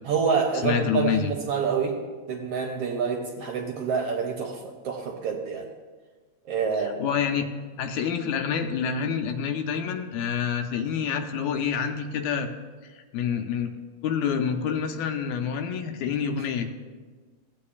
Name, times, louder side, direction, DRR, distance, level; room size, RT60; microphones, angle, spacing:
voice 1, 0.0-2.0 2.3-5.7 6.5-7.0, right 6 dB, 70° right, 2 dB, 1.5 m, -27 dB
voice 2, 0.6-1.3 6.8-7.5 7.8-12.5 12.8-13.7 14.0-16.7, left 7 dB, 80° left, 5 dB, 2.0 m, -27 dB
15.5 x 8.5 x 2.4 m, 1.4 s
omnidirectional pair, 3.3 m